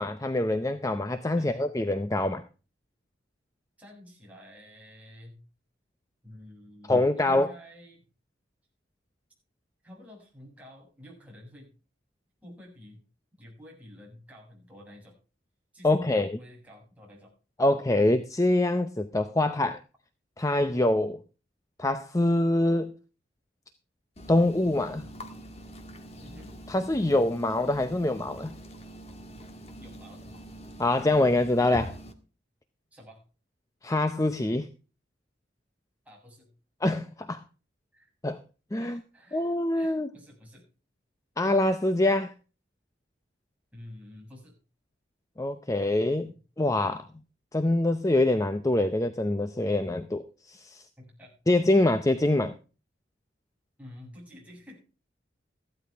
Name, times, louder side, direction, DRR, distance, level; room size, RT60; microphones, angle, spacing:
voice 1, 0.0-2.4 6.9-7.5 15.8-16.4 17.6-19.8 20.4-21.2 21.8-22.9 24.3-25.1 26.7-28.6 30.8-32.0 33.8-34.7 36.8-37.4 38.2-38.4 38.7-39.0 39.3-40.1 41.4-42.3 45.4-47.1 47.5-50.8 51.5-52.6, left 2 dB, 15° left, 10 dB, 0.6 m, -25 dB
voice 2, 3.8-5.4 6.2-8.0 9.8-11.7 12.4-13.0 13.4-15.2 15.7-17.3 26.2-26.5 29.8-30.3 32.9-33.2 36.1-36.5 37.9-38.1 38.7-40.7 43.7-44.5 51.0-51.6 53.8-54.8, left 1 dB, 10° right, -2 dB, 7.1 m, -50 dB
sound 1, 24.2-32.1, equal, 35° left, 1.6 m, -44 dB
15.0 x 12.5 x 3.5 m, 0.35 s
head